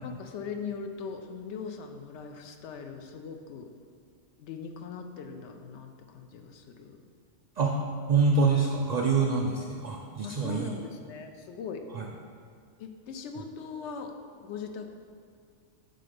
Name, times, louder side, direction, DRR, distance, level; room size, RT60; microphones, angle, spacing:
voice 1, 0.0-3.7 4.4-7.0 10.2-11.9 12.8-14.9, left 5 dB, 75° left, 6 dB, 0.9 m, -40 dB
voice 2, 8.1-10.7 11.9-12.0, right 4 dB, 75° right, -1 dB, 0.3 m, -25 dB
5.6 x 3.9 x 5.1 m, 2.2 s
omnidirectional pair, 1.2 m